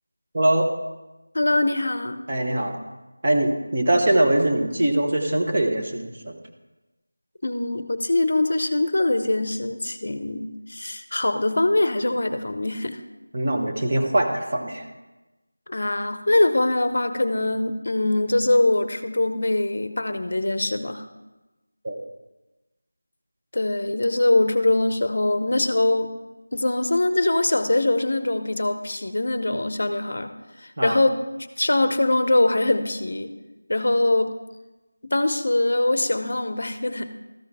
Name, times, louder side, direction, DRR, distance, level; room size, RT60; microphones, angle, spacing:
voice 1, 0.3-0.7 2.3-2.8 3.2-6.3 13.3-14.8 21.8-22.0 30.8-31.0, right 1 dB, 30° right, 2 dB, 1.1 m, -22 dB
voice 2, 1.3-2.2 7.4-13.0 15.7-21.0 23.5-26.1 26.5-30.3 30.6-31.2 31.6-33.3 33.7-34.4 35.0-37.0, left 2 dB, 50° left, 10 dB, 0.7 m, -22 dB
13.5 x 5.6 x 4.8 m, 1.1 s
figure-of-eight pair, 175°, 0 cm